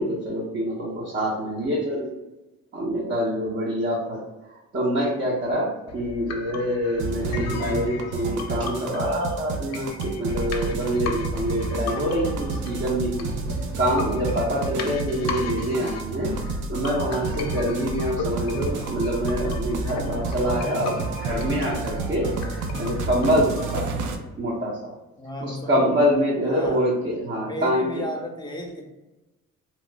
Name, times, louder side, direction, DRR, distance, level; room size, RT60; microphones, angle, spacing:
voice 1, 0.0-2.1 2.7-4.2 4.7-13.3 13.8-23.9 24.3-24.9 25.4-27.9, equal, 40° right, -5 dB, 0.9 m, -25 dB
sound 1, 5.9-23.9, left 4 dB, 60° left, 0.5 m, -36 dB
sound 2, 7.0-24.2, right 4 dB, 80° right, 0.5 m, -30 dB
voice 2, 25.2-26.0 26.4-26.9 27.4-28.9, left 1 dB, 15° left, 2 dB, 0.7 m, -33 dB
2.9 x 2.0 x 3.3 m, 1.1 s
cardioid pair, 90°, 30 cm